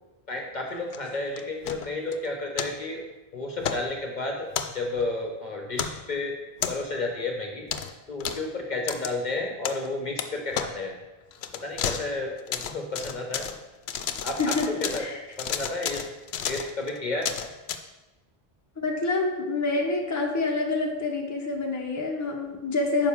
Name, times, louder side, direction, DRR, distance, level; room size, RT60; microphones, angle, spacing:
voice 1, 0.3-3.0 3.3-6.4 6.7-11.0 11.6-13.5 14.2-15.0 15.4-16.1 16.5-17.3, left 2 dB, 45° left, 2 dB, 0.9 m, -32 dB
sound 1, 0.9-2.2 2.6-2.7 3.6-3.8 4.5-5.1 5.7-6.0 6.6-7.0 7.7-7.9 8.2-8.4 8.9-9.1 9.6-9.9 10.2-10.3 10.5-10.7 11.3-12.1 12.4-13.6 13.9-15.1 15.3-17.8, left 8 dB, 80° left, 0.8 m, -32 dB
voice 2, 14.4-15.2 18.8-23.1, left 3 dB, 20° left, 0 dB, 0.9 m, -27 dB
9.2 x 5.8 x 3.5 m, 1.1 s
omnidirectional pair, 1.1 m